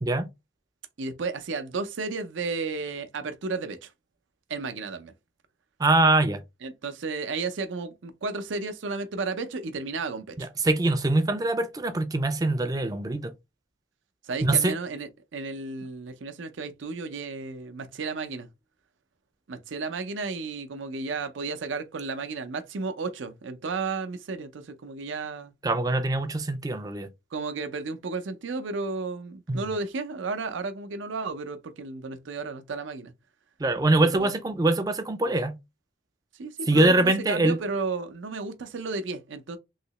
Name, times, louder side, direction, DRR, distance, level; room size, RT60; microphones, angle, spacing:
voice 1, 1.0-3.9 4.5-5.1 6.6-10.5 14.3-18.5 19.5-25.5 27.3-33.1 34.0-34.3 36.4-39.6, right 4 dB, 85° right, 0.5 m, -33 dB
voice 2, 5.8-6.4 10.4-13.3 14.4-14.7 25.6-27.1 29.5-29.6 33.6-35.5 36.7-37.6, right 2 dB, 20° right, 0.3 m, -23 dB
3.2 x 2.8 x 2.9 m
head